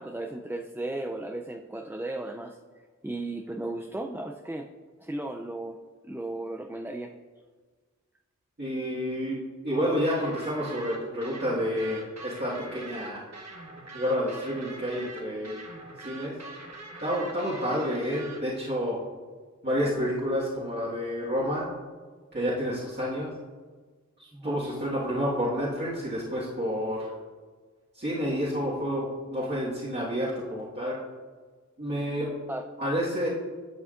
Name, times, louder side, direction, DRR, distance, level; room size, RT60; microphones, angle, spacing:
voice 1, 0.0-2.6 3.0-4.7 5.0-5.8 6.0-7.1 24.3-24.6 32.5-32.6, right 2 dB, 5° right, 3 dB, 0.4 m, -35 dB
voice 2, 8.6-13.2 13.9-15.6 16.0-16.3 17.0-19.0 19.6-21.7 22.3-23.3 24.4-27.1 27.9-31.0 31.8-32.3 32.8-33.3, equal, 35° right, -10 dB, 1.7 m, -29 dB
sound 1, 10.0-18.4, right 2 dB, 60° right, 1.3 m, -43 dB
11.0 x 6.0 x 2.5 m, 1.5 s
wide cardioid pair, 50°, 30 cm